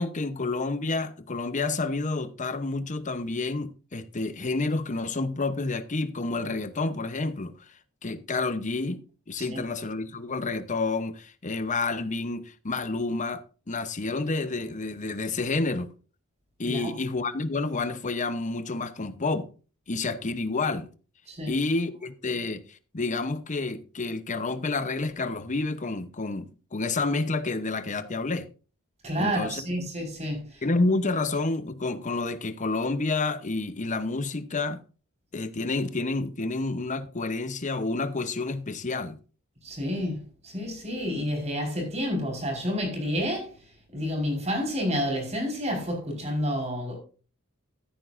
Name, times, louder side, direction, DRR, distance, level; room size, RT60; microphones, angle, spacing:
voice 1, 0.0-7.5 8.0-15.9 16.6-19.5 19.9-20.9 21.5-26.5 26.7-28.5 29.2-29.6 30.6-34.8 35.3-39.2, left 3 dB, 35° left, 0.9 m, -29 dB
voice 2, 16.6-17.0 21.3-21.5 29.0-30.6 39.6-40.2 40.4-43.6 43.9-47.0, equal, 30° right, 4.8 m, -29 dB
14.5 x 9.2 x 2.6 m
head